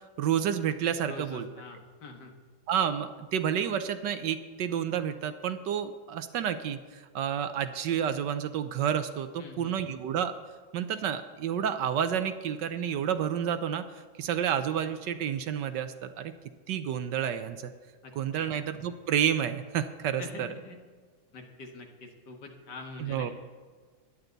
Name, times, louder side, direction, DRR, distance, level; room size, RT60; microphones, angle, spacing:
voice 1, 0.2-1.5 2.7-10.3 10.7-13.8 14.2-16.3 16.7-17.7 18.1-20.5 23.0-23.3, right 9 dB, 70° right, 10 dB, 1.2 m, -30 dB
voice 2, 1.1-2.3 9.4-9.9 18.0-18.6 20.2-20.8 21.3-23.3, left 3 dB, 55° left, 3 dB, 2.0 m, -44 dB
17.0 x 11.0 x 4.0 m, 1.5 s
omnidirectional pair, 2.2 m